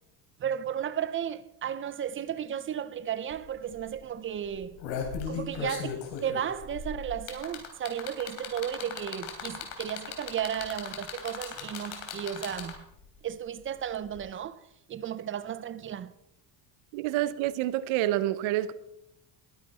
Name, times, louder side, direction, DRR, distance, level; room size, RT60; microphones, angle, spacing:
voice 1, 0.4-4.8 5.3-12.9 13.2-14.6 14.9-16.1, right 9 dB, 25° right, 0.5 m, -34 dB
sound 1, 3.3-3.4 3.7-4.0 4.5-12.9 14.1-14.2, left 7 dB, 90° left, 3.3 m, -37 dB
voice 2, 16.9-18.7, right 14 dB, 80° right, 1.0 m, -28 dB
20.5 x 9.5 x 4.3 m
cardioid pair, 150°, 47 cm